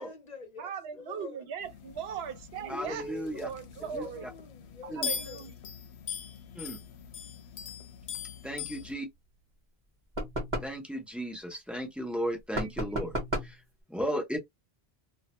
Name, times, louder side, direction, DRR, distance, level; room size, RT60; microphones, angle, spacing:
voice 1, 0.0-1.4 2.6-5.4, left 3 dB, 45° left, 0.7 m, -45 dB
voice 2, 0.6-4.3 4.8-5.5 12.6-13.1, right 7 dB, 70° right, 0.8 m, -39 dB
sound 1, 1.6-8.9, left 7 dB, 75° left, 0.8 m, -41 dB
voice 3, 2.7-3.5 3.9-4.0 4.9-5.1 6.6-6.8 8.4-9.1 10.6-13.2 13.4-13.6 13.9-14.4, equal, ahead, 0.3 m, -35 dB
sound 2, 10.2-10.8 12.5-13.6, equal, 30° right, 0.8 m, -33 dB
2.2 x 2.0 x 2.8 m
omnidirectional pair, 1.1 m